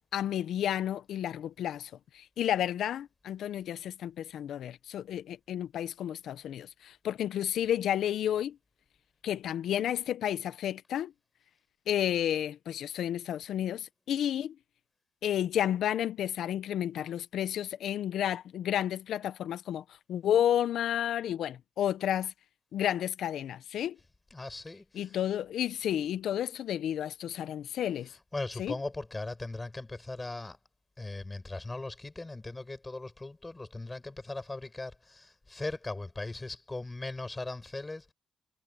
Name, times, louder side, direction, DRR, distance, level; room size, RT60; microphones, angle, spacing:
voice 1, 0.1-8.6 9.2-11.1 11.9-14.5 15.2-22.3 22.7-24.0 24.9-28.1 28.6-28.7, left 10 dB, 70° left, 0.9 m, -31 dB
voice 2, 24.3-25.1 28.3-30.6 31.0-38.1, left 2 dB, 20° left, 6.9 m, -39 dB
cardioid pair, 90°, 0 cm